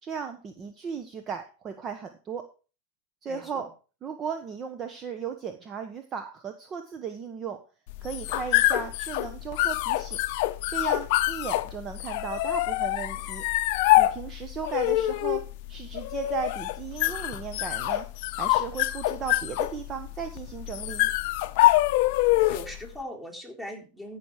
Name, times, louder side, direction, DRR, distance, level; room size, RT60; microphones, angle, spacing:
voice 1, 0.0-2.5 3.2-3.7 4.0-7.6 8.0-10.2 10.7-13.4 14.0-15.4 15.7-18.1 18.4-21.1, right 6 dB, 30° right, 7 dB, 1.3 m, -36 dB
voice 2, 3.3-3.7 22.5-24.2, equal, 10° right, 0 dB, 4.1 m, -40 dB
sound 1, 7.9-22.8, left 17 dB, 60° left, 0.7 m, -25 dB
14.5 x 6.2 x 5.0 m, 0.35 s
hypercardioid pair, 110°, 0 cm